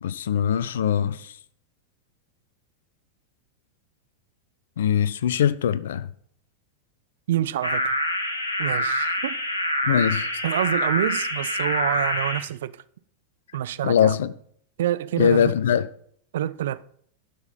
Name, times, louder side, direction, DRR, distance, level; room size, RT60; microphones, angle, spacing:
voice 1, 0.0-1.2 4.8-6.1 9.9-10.3 13.8-14.3 15.2-15.9, left 9 dB, 60° left, 0.5 m, -21 dB
voice 2, 7.3-7.9 8.6-9.4 10.4-12.7 13.5-14.2 14.8-15.5 16.3-16.8, right 12 dB, 60° right, 0.4 m, -27 dB
sound 1, 7.6-12.4, left 1 dB, 75° left, 1.6 m, -26 dB
11.5 x 5.9 x 5.3 m
figure-of-eight pair, 90°, 0 cm